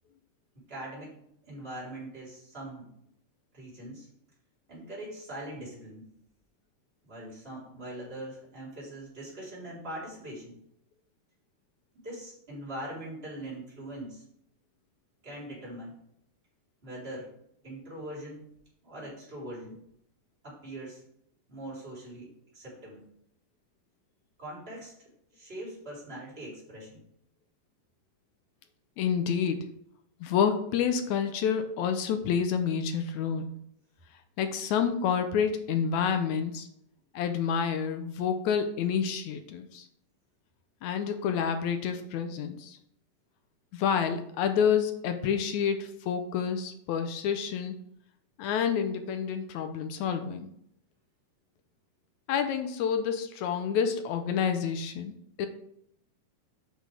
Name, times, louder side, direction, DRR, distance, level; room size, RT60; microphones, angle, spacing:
voice 1, 0.5-1.1 1.5-2.9 3.5-4.1 4.7-6.1 7.0-10.6 12.0-14.2 15.2-15.9 16.8-17.3 17.6-18.4 18.8-19.8 20.4-21.0 21.5-23.0 24.4-24.9 25.3-27.0, right 1 dB, 15° right, -6 dB, 3.9 m, -42 dB
voice 2, 29.0-29.6 30.2-33.5 34.4-36.7 37.1-39.9 40.8-42.8 43.7-47.8 48.4-50.5 52.3-55.1 55.4-55.5, left 7 dB, 75° left, 8 dB, 1.9 m, -28 dB
8.3 x 5.9 x 4.9 m, 0.73 s
omnidirectional pair, 3.7 m